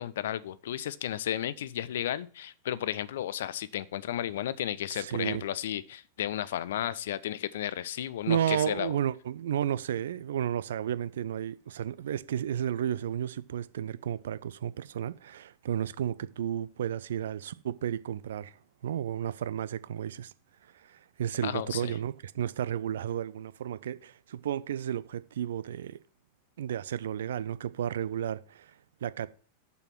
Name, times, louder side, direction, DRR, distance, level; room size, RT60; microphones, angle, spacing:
voice 1, 0.0-9.0 21.4-22.0, left 11 dB, 60° left, 0.5 m, -33 dB
voice 2, 4.9-5.4 8.3-18.5 18.8-20.3 20.8-26.0 26.6-28.7 29.0-29.3, right 10 dB, 60° right, 0.5 m, -32 dB
6.9 x 6.8 x 5.9 m
figure-of-eight pair, 90°, 0 cm